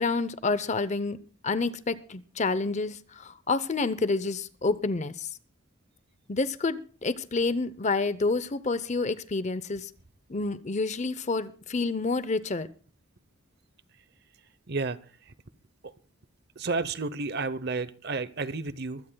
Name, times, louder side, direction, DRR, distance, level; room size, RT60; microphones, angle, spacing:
voice 1, 0.0-5.3 6.3-9.9 10.3-12.7, left 3 dB, 30° left, 0.6 m, -29 dB
voice 2, 14.7-15.0 16.6-19.0, right 3 dB, 50° right, 0.8 m, -31 dB
24.0 x 16.5 x 2.3 m
head